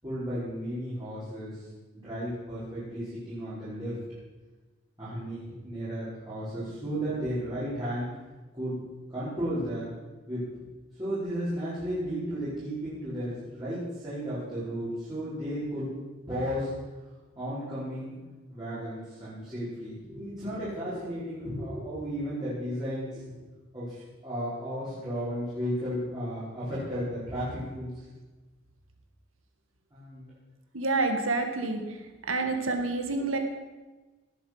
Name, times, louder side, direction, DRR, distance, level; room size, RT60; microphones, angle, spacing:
voice 1, 0.0-1.7 2.0-4.0 5.0-8.1 8.5-8.8 9.1-9.9 10.3-10.4 11.0-15.9 16.3-16.7 17.4-18.2 18.5-23.2 23.7-28.1 29.9-30.3, equal, 20° right, -12 dB, 5.4 m, -34 dB
voice 2, 30.7-31.8 32.3-33.4, right 3 dB, 80° right, 5 dB, 2.1 m, -28 dB
19.0 x 8.4 x 6.2 m, 1.2 s
head